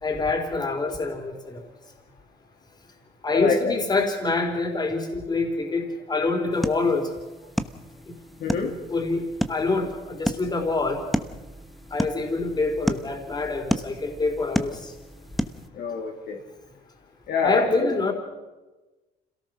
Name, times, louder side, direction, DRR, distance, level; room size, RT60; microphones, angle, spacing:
voice 1, 0.0-1.6 3.2-7.2 8.9-11.0 11.9-14.9 17.4-18.1, left 3 dB, 25° left, 3 dB, 3.9 m, -26 dB
voice 2, 3.3-3.8 8.4-8.8 15.7-16.4 17.3-17.9, left 5 dB, 65° left, 1 dB, 2.9 m, -26 dB
sound 1, 6.5-15.7, equal, ahead, 1.1 m, -32 dB
26.5 x 17.5 x 6.3 m, 1.1 s
cardioid pair, 110°, 17 cm